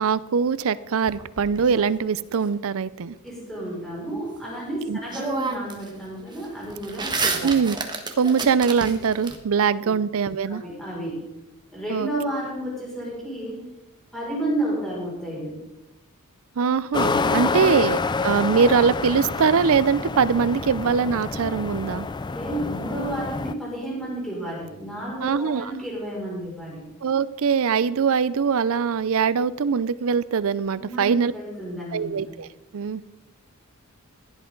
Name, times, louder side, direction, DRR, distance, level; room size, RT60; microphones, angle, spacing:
voice 1, 0.0-3.2 4.9-5.0 7.4-7.8 8.2-10.6 11.9-12.1 16.6-22.1 25.2-25.7 27.0-31.3 31.9-32.5 32.7-33.1, right 6 dB, 65° right, 17 dB, 0.5 m, -22 dB
sound 1, 1.1-2.4 4.6-4.7 5.1-5.9 6.2-9.4, right 3 dB, 20° right, 1.3 m, -30 dB
voice 2, 3.2-7.5 9.8-9.9 10.4-11.4 11.7-13.6 14.1-15.7 17.3-17.6 22.3-26.9 30.8-32.4, right 1 dB, ahead, -6 dB, 5.6 m, -31 dB
sound 2, 16.9-23.5, left 4 dB, 20° left, 0.3 m, -27 dB
16.0 x 11.0 x 3.9 m, 0.93 s
head